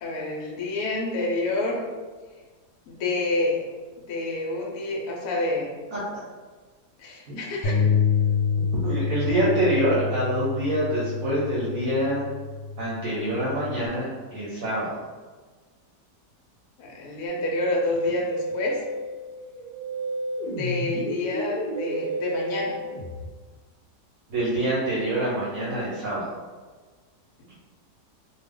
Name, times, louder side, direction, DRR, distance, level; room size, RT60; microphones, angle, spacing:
voice 1, 0.0-1.8 2.9-3.6 4.0-5.7 7.0-7.9 16.8-18.8 20.4-22.8, left 2 dB, 70° left, -2 dB, 1.0 m, -28 dB
voice 2, 5.9-6.2 7.3-7.4 7.7-7.9 8.8-12.3 12.8-15.0 24.3-26.3, right 1 dB, 60° right, -6 dB, 1.0 m, -26 dB
Bass guitar, 7.6-13.9, left 6 dB, 85° left, 1.2 m, -27 dB
Musical instrument, 17.3-23.3, right 1 dB, 85° right, 1.3 m, -31 dB
2.7 x 2.3 x 3.5 m, 1.4 s
omnidirectional pair, 1.9 m